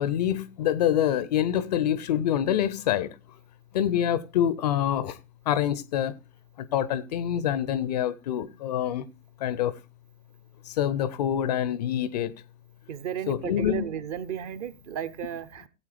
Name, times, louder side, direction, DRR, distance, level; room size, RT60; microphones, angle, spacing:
voice 1, 0.0-3.2 3.7-5.2 5.5-6.1 6.6-9.0 9.4-9.8 10.7-12.3 13.3-13.8, left 10 dB, 30° left, 0.5 m, -26 dB
voice 2, 12.9-15.7, right 9 dB, 30° right, 0.7 m, -34 dB
16.0 x 8.4 x 3.3 m
figure-of-eight pair, 115°, 42 cm